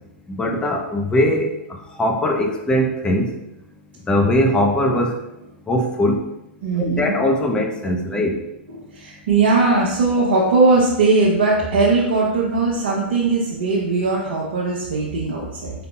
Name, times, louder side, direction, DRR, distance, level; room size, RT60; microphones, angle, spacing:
voice 1, 0.3-3.3 4.1-5.2 5.7-6.3 6.7-8.4, left 1 dB, 15° left, 2 dB, 0.7 m, -20 dB
voice 2, 6.6-7.2 8.7-15.7, right 3 dB, 65° right, -5 dB, 1.0 m, -19 dB
5.0 x 4.0 x 2.3 m, 0.88 s
figure-of-eight pair, 100°, 6 cm